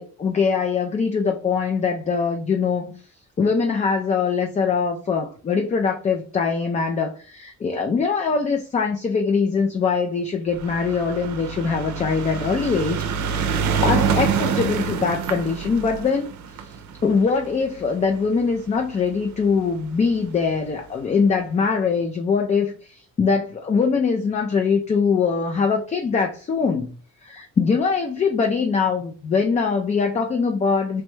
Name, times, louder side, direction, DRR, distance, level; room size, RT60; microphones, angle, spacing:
voice 1, 0.0-2.9 3.4-13.4 13.8-16.3 16.6-26.9 27.2-31.0, left 5 dB, 25° left, 3 dB, 0.3 m, -22 dB
sound 1, 10.5-19.0 19.8-19.9 20.1-20.2 20.5-20.6, right 6 dB, 70° right, 0.5 m, -26 dB
3.1 x 2.2 x 3.1 m, 0.41 s
cardioid pair, 90°, 30 cm